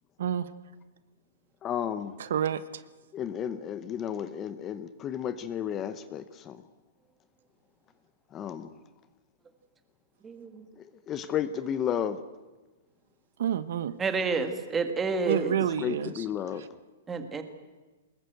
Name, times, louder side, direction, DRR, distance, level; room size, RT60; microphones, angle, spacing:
voice 1, 1.6-2.1 3.1-6.6 8.3-8.7 10.8-12.2 15.5-16.7, left 9 dB, 20° left, 0.8 m, -33 dB
voice 2, 2.2-2.8 13.4-13.9 15.3-16.2, right 9 dB, 65° right, 1.2 m, -29 dB
voice 3, 10.2-10.6 14.0-15.6 17.1-17.4, right 4 dB, 10° right, 1.8 m, -29 dB
23.5 x 21.0 x 8.0 m
hypercardioid pair, 165°, 0 cm